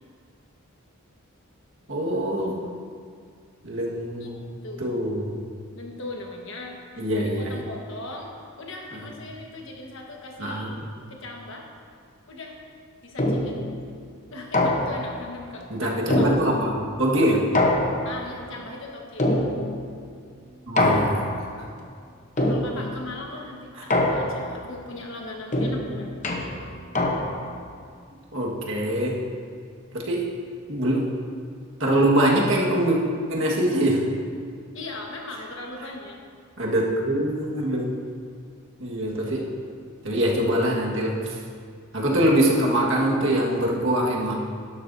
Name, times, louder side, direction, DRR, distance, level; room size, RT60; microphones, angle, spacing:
voice 1, 1.9-2.6 3.6-4.4 4.8-5.3 7.0-7.5 10.4-10.7 15.7-17.4 20.7-21.2 28.3-29.2 29.9-30.3 30.7-31.1 31.8-33.0 33.3-34.0 36.6-37.9 38.8-39.4 40.0-41.4 41.9-44.3, right 1 dB, 55° right, -2 dB, 1.6 m, -23 dB
voice 2, 5.7-6.8 7.2-8.3 8.6-10.8 11.1-11.7 12.3-12.6 13.0-13.6 14.3-16.3 18.0-19.3 22.4-26.2 34.7-36.2, left 2 dB, 55° left, 0 dB, 1.4 m, -38 dB
sound 1, 13.2-13.7 14.5-15.2 16.1-16.9 17.5-18.3 19.2-19.9 20.8-21.5 22.4-23.0 23.9-24.6 25.5-27.6, left 1 dB, 35° left, 0.9 m, -24 dB
12.0 x 11.5 x 2.7 m, 2.1 s
head